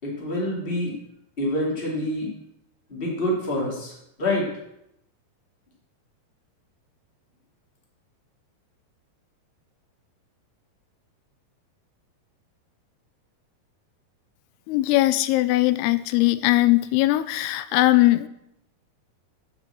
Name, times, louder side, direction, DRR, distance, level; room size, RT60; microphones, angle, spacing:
voice 1, 0.0-0.9 1.4-2.3 2.9-4.5, left 1 dB, 15° left, -2 dB, 2.6 m, -26 dB
voice 2, 14.7-18.3, left 17 dB, 85° left, 14 dB, 2.6 m, -20 dB
8.6 x 7.3 x 7.6 m, 0.79 s
omnidirectional pair, 4.5 m